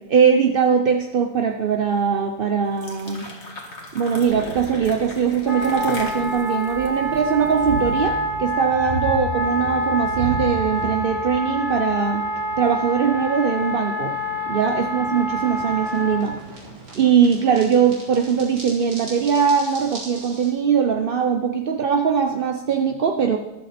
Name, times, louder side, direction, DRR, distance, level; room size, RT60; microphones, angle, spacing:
voice 1, 0.1-3.3 3.9-12.2 12.6-14.1 14.5-16.4 16.9-23.4, right 7 dB, 50° right, 4 dB, 0.7 m, -21 dB
sound 1, 2.6-7.9, left 2 dB, 40° left, 2.2 m, -38 dB
sound 2, 4.2-20.5, right 2 dB, 85° right, 4.6 m, -36 dB
Wind instrument woodwind instrument, 5.4-16.3, left 1 dB, 10° right, 3.0 m, -27 dB
13.5 x 12.5 x 4.3 m, 1.0 s
omnidirectional pair, 1.8 m